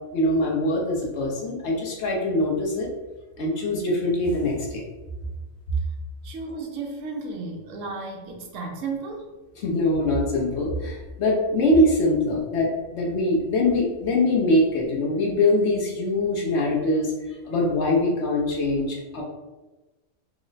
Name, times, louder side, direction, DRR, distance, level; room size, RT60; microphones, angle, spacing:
voice 1, 0.1-2.9 3.4-4.8 9.6-17.1 17.5-19.2, left 1 dB, 65° left, -2 dB, 0.9 m, -23 dB
voice 2, 6.2-9.2, right 3 dB, 75° right, 1 dB, 0.9 m, -33 dB
3.1 x 2.0 x 3.8 m, 1.1 s
omnidirectional pair, 1.4 m